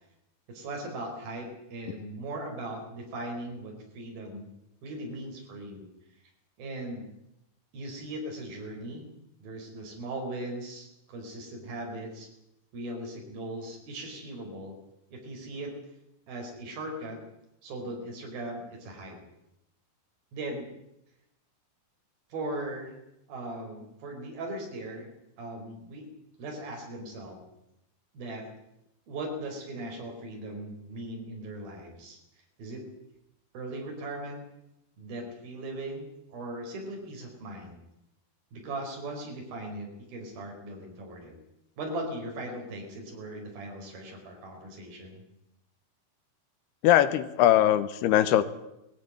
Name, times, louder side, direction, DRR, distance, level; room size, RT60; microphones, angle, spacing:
voice 1, 0.5-4.5 4.8-5.9 6.6-7.1 7.7-9.1 9.4-12.3 12.7-14.8 15.1-15.7 16.3-17.2 17.6-19.2 20.3-20.7 22.3-22.9 23.3-25.1 25.4-26.1 26.4-27.4 28.1-28.5 29.1-32.2 32.6-32.8 33.5-34.4 35.0-37.8 38.5-41.3 41.8-45.2, right 1 dB, 65° right, 1 dB, 6.2 m, -38 dB
voice 2, 46.8-48.4, left 12 dB, 90° left, 12 dB, 3.0 m, -21 dB
19.0 x 15.0 x 9.5 m, 0.87 s
omnidirectional pair, 4.6 m